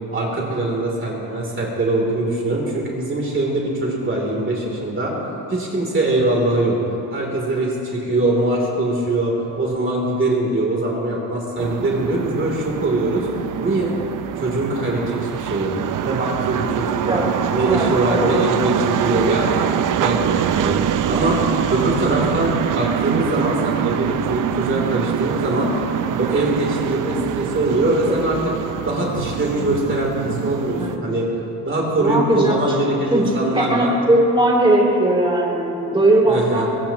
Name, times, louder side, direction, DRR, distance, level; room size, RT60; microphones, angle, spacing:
voice 1, 0.1-5.1 5.5-6.8 7.1-13.3 13.6-13.9 14.3-15.7 16.0-17.2 17.5-20.8 21.1-21.4 21.7-25.7 26.2-28.4 28.9-31.3 31.6-34.0 36.3-36.7, right 2 dB, 35° right, -2 dB, 3.1 m, -22 dB
sound 1, 11.6-31.0, right 10 dB, 65° right, 0.6 m, -24 dB
voice 2, 17.6-18.3 21.2-21.3 28.1-28.2 30.8-31.0 32.0-32.6 33.1-36.7, right 1 dB, 15° right, -3 dB, 3.3 m, -19 dB
23.5 x 20.0 x 3.0 m, 2.9 s
cardioid pair, 115°, 35 cm